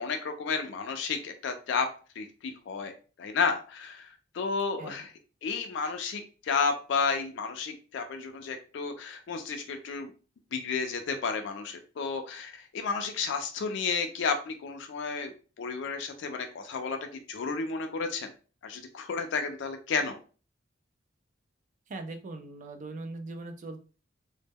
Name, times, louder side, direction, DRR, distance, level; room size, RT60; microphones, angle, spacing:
voice 1, 0.0-1.9 2.2-5.1 5.4-10.1 10.5-17.0 17.3-18.3 18.6-20.2, left 5 dB, 65° left, 6 dB, 0.3 m, -32 dB
voice 2, 21.9-23.8, right 2 dB, 40° right, 7 dB, 0.3 m, -40 dB
2.1 x 2.0 x 3.3 m, 0.37 s
head